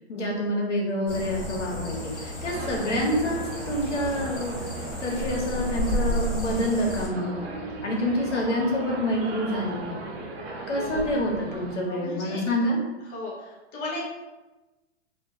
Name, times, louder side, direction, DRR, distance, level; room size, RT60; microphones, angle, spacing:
voice 1, 0.1-3.4 3.7-4.6 5.0-7.3 7.8-10.0 10.7-12.8, equal, 85° left, -2 dB, 0.9 m, -27 dB
sound 1, 1.1-7.1, equal, 45° left, 0.8 m, -32 dB
sound 2, 2.4-11.8, right 3 dB, 60° right, 0.6 m, -38 dB
voice 2, 10.4-11.0 11.9-12.4 13.1-14.0, left 2 dB, 20° left, -4 dB, 0.4 m, -36 dB
2.3 x 2.2 x 2.6 m, 1.1 s
hypercardioid pair, 120°, 35 cm